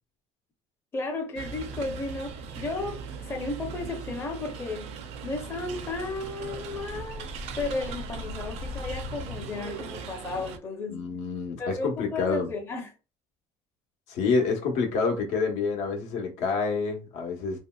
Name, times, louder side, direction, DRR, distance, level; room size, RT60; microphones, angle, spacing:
voice 1, 0.9-4.9 5.2-11.0 11.6-12.9, left 3 dB, 20° left, 0.6 m, -34 dB
sound 1, 1.4-10.6, right 6 dB, 60° right, 0.4 m, -39 dB
sound 2, 5.8-10.1, left 3 dB, 40° left, 1.2 m, -41 dB
voice 2, 10.9-12.5 14.1-17.6, left 4 dB, 80° left, 1.0 m, -28 dB
3.0 x 2.7 x 2.3 m
cardioid pair, 160°, 12 cm